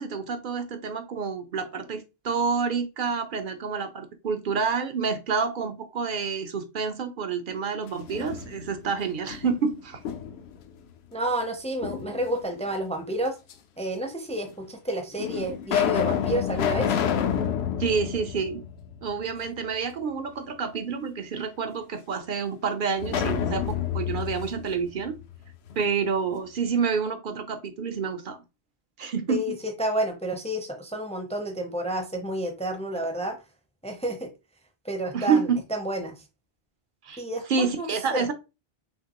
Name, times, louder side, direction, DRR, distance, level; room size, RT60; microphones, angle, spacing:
voice 1, 0.0-10.0 17.8-18.6 19.0-25.2 25.8-28.4 29.0-29.5 35.1-35.6 37.0-37.2 37.5-38.3, right 5 dB, 55° right, 8 dB, 0.8 m, -28 dB
sound 1, 7.9-8.9 9.3-10.6 11.8-12.6 13.5-13.6 14.5-14.6 15.2-19.3 19.6-19.7 23.0-25.8, left 9 dB, 75° left, 0.8 m, -29 dB
voice 2, 11.1-13.4 13.8-17.0 29.3-29.5 29.8-33.4 33.8-34.3 34.8-36.1 37.2-38.3, right 1 dB, 10° left, 5 dB, 0.6 m, -30 dB
5.8 x 2.5 x 2.9 m, 0.27 s
omnidirectional pair, 1.1 m